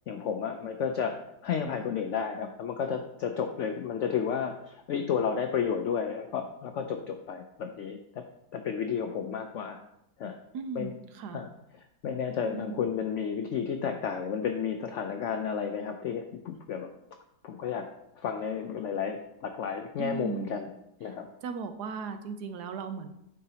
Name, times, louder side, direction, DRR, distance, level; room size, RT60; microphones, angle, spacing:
voice 1, 0.1-1.2 1.4-8.2 8.5-9.8 10.2-10.3 10.8-10.9 11.3-11.5 12.0-16.9 17.4-17.9 18.2-20.7 21.0-21.3, left 7 dB, 80° left, 6 dB, 0.6 m, -32 dB
voice 2, 10.5-11.4 12.4-12.8 20.0-20.6 21.1-21.2 21.4-23.1, right 5 dB, 75° right, 8 dB, 1.2 m, -37 dB
8.7 x 5.5 x 2.8 m, 0.82 s
omnidirectional pair, 1.8 m